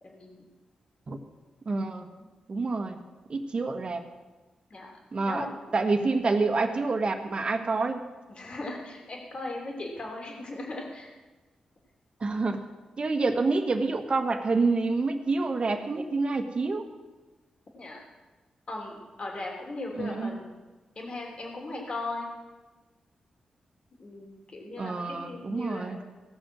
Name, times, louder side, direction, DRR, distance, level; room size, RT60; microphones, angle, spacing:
voice 1, 0.0-0.5 2.2-2.3 4.7-5.0 5.2-5.7 8.3-11.1 17.7-18.0 18.7-20.5 20.9-22.3 24.0-26.1, left 2 dB, 50° left, 0 dB, 3.1 m, -38 dB
voice 2, 1.6-2.1 2.5-3.0 3.3-4.0 5.1-5.5 5.7-8.0 12.2-12.7 13.0-16.9 20.0-20.4 24.8-26.0, right 3 dB, 50° right, 6 dB, 1.4 m, -27 dB
17.5 x 6.3 x 6.3 m, 1.2 s
cardioid pair, 60°, 2 cm